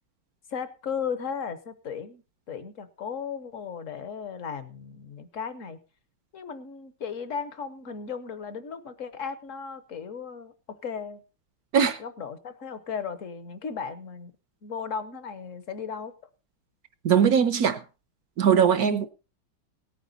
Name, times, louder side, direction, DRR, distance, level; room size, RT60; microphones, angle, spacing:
voice 1, 0.5-5.8 6.3-11.2 12.0-14.3 14.6-16.1 18.8-19.0, left 6 dB, 50° left, 1.1 m, -36 dB
voice 2, 17.0-17.8 18.4-19.1, right 7 dB, 60° right, 1.0 m, -20 dB
17.5 x 9.1 x 4.1 m
omnidirectional pair, 2.3 m